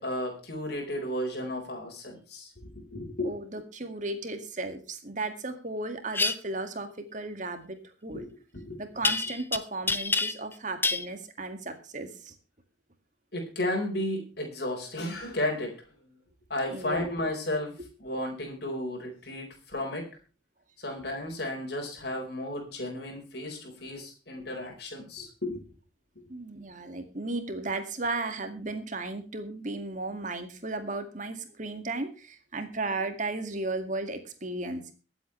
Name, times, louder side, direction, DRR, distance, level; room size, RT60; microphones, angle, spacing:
voice 1, 0.0-3.3 8.1-8.3 8.5-8.8 13.3-15.8 16.5-20.1 20.8-25.6, left 1 dB, 60° left, 1 dB, 4.5 m, -33 dB
voice 2, 3.2-8.3 8.8-12.4 16.7-17.1 20.9-21.0 26.3-34.9, right 2 dB, 40° right, 7 dB, 2.0 m, -35 dB
sound 1, 6.1-6.3 9.0-9.6 9.9-10.5 10.8-11.1, left 3 dB, 10° left, 0.7 m, -26 dB
23.0 x 8.2 x 3.2 m, 0.34 s
head